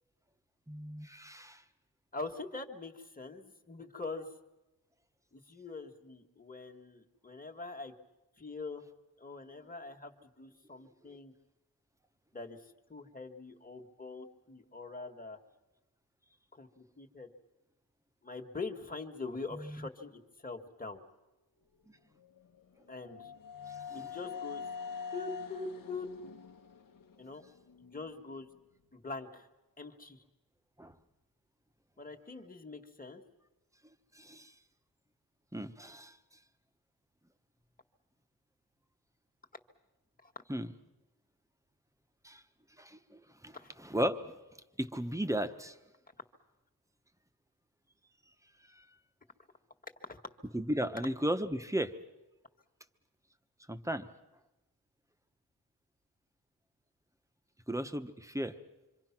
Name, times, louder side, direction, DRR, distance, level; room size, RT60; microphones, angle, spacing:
voice 1, 0.7-1.6 19.5-19.9 23.9-24.0 30.8-30.9 34.2-34.5 35.5-36.2 40.5-40.7 42.2-42.4 42.8-43.6 43.8-44.3 44.8-45.7 48.8-48.9 50.5-51.9 53.7-54.1 57.7-58.6, equal, 10° right, 9 dB, 1.1 m, -35 dB
voice 2, 2.1-4.3 5.3-7.9 8.4-8.8 9.2-11.3 12.3-15.4 16.5-17.3 18.2-21.0 22.9-23.3 23.9-24.6 25.1-26.1 27.2-27.4 27.8-28.5 28.9-29.5 29.8-30.2 32.0-33.2 40.2-40.3 43.5-43.7 50.0-50.2, left 3 dB, 20° left, 4 dB, 1.8 m, -43 dB
sound 1, 22.2-28.1, left 6 dB, 60° left, 1.3 m, -45 dB
26.5 x 25.0 x 6.0 m, 1.0 s
wide cardioid pair, 105°, 38 cm